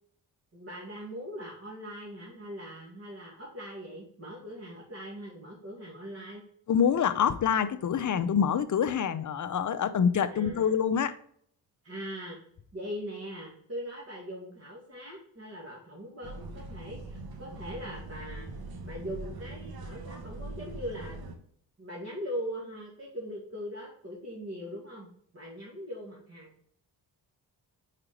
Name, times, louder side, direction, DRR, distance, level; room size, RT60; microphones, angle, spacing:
voice 1, 0.5-6.4 10.3-10.7 11.8-12.4 12.7-18.5 18.8-21.2 21.8-26.5, equal, 35° right, 2.3 m, -41 dB
voice 2, 6.7-11.2, left 7 dB, 45° left, 0.6 m, -26 dB
sound 1, 16.2-21.4, right 2 dB, 55° right, 1.1 m, -42 dB
4.9 x 4.5 x 5.1 m
cardioid pair, 60°, 43 cm